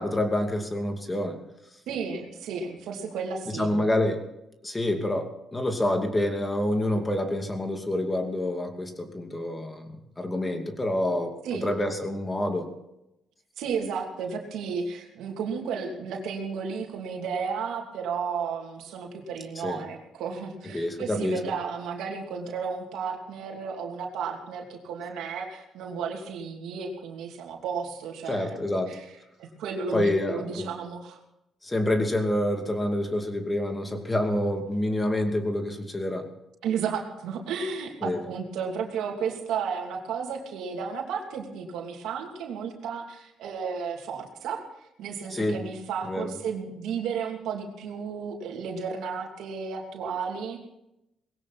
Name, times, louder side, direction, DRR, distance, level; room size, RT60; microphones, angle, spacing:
voice 1, 0.0-1.4 3.5-4.2 4.6-9.9 10.2-12.7 19.6-19.8 20.7-21.4 28.3-29.0 29.9-30.7 31.6-36.3 38.0-38.2 45.3-45.6 46.0-46.4, left 1 dB, 20° left, 5 dB, 2.6 m, -27 dB
voice 2, 1.9-3.9 11.4-11.7 13.6-29.0 29.4-31.2 36.6-44.6 45.0-50.6, right 6 dB, 85° right, 2 dB, 2.9 m, -33 dB
19.5 x 16.5 x 4.2 m, 0.86 s
cardioid pair, 90°, 0 cm